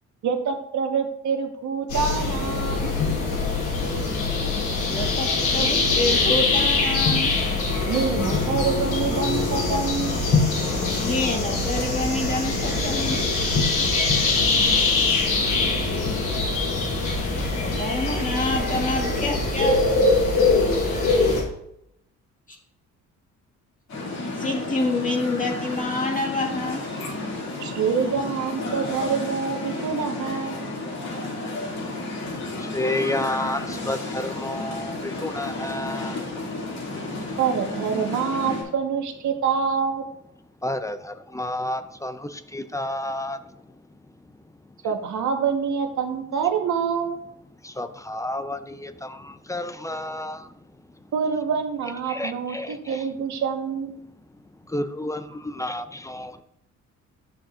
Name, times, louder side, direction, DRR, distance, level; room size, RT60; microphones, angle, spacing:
voice 1, 0.2-2.9 7.9-10.1 27.6-30.7 37.4-40.0 44.8-47.2 51.1-54.0, right 6 dB, 70° right, 5 dB, 1.2 m, -26 dB
sound 1, 1.9-21.4, left 3 dB, 80° left, 2.9 m, -23 dB
voice 2, 4.8-7.3 10.9-13.2 17.6-19.8 24.4-26.8, left 2 dB, 25° left, 1 dB, 1.8 m, -27 dB
sound 2, 23.9-38.6, left 2 dB, 65° left, 2.4 m, -32 dB
voice 3, 32.6-36.2 40.6-43.4 47.6-50.4 52.1-53.0 54.7-56.3, left 1 dB, 10° left, 10 dB, 0.5 m, -30 dB
9.6 x 6.3 x 2.4 m, 0.75 s
cardioid pair, 90°, 30 cm